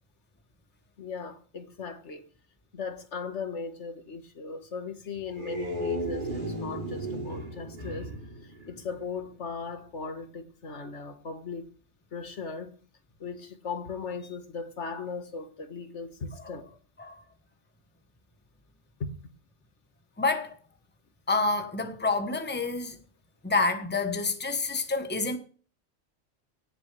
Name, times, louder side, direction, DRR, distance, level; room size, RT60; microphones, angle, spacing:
voice 1, 1.0-2.2 2.7-8.1 8.4-11.7 12.1-12.8 13.2-16.7 19.0-19.1, left 5 dB, 80° left, 1.8 m, -38 dB
sound 1, 5.2-9.4, right 1 dB, 45° right, 3.8 m, -35 dB
voice 2, 20.2-20.6 21.3-23.0 23.4-25.4, left 3 dB, 10° left, 1.1 m, -28 dB
18.0 x 7.1 x 3.3 m
omnidirectional pair, 1.2 m